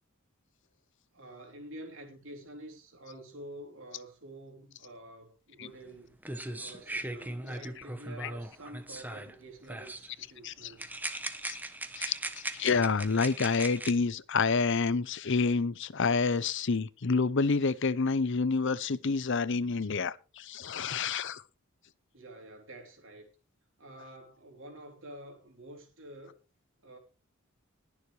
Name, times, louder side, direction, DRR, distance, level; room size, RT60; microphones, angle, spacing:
voice 1, 1.1-6.1 6.5-10.9 22.1-23.3 23.8-26.4 26.8-27.0, right 1 dB, 65° right, 3.4 m, -48 dB
sound 1, 5.9-6.0 6.2-9.4 9.7-10.1 10.8-13.9, right 2 dB, 10° right, 0.9 m, -39 dB
voice 2, 12.0-21.4, left 4 dB, 60° left, 0.7 m, -28 dB
20.5 x 7.1 x 3.3 m
head